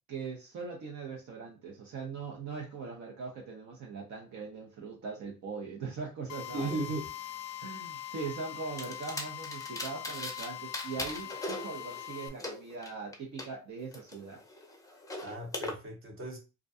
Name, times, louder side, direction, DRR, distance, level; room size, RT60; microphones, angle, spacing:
voice 1, 0.1-6.7 7.6-14.4, right 4 dB, 65° right, -2 dB, 0.8 m, -41 dB
Drill, 6.3-12.3, left 12 dB, 65° left, 0.5 m, -42 dB
voice 2, 6.5-7.1 15.2-16.4, right 2 dB, 45° right, 1 dB, 1.0 m, -36 dB
sound 1, 8.8-10.5 10.7-13.5 13.9-15.7, left 1 dB, 10° left, 0.5 m, -40 dB
2.4 x 2.2 x 2.5 m, 0.30 s
cardioid pair, 90°, 30 cm